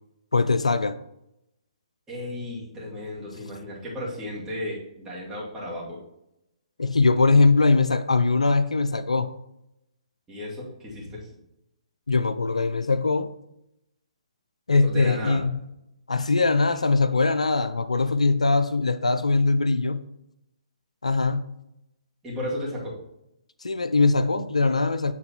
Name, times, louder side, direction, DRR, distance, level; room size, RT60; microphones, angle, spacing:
voice 1, 0.3-1.0 6.8-9.3 12.1-13.3 14.7-15.5 16.1-20.0 21.0-21.5 23.6-25.1, left 3 dB, 75° left, 0.4 m, -21 dB
voice 2, 2.1-6.0 10.3-11.3 14.8-15.4 22.2-23.0, left 1 dB, 10° right, 2.4 m, -34 dB
8.3 x 3.8 x 4.4 m
figure-of-eight pair, 130°, 4 cm